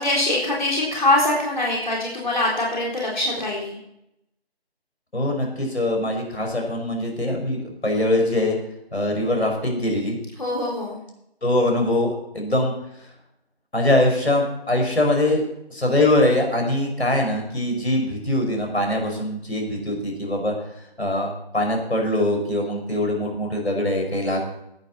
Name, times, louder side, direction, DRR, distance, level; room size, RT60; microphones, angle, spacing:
voice 1, 0.0-3.8 10.4-11.0, left 1 dB, 45° left, -4 dB, 3.9 m, -23 dB
voice 2, 5.1-8.6 8.9-10.2 11.4-12.7 13.7-20.5 21.0-24.4, left 1 dB, 90° left, 1 dB, 5.6 m, -22 dB
17.5 x 9.5 x 4.4 m, 0.80 s
figure-of-eight pair, 180°, 32 cm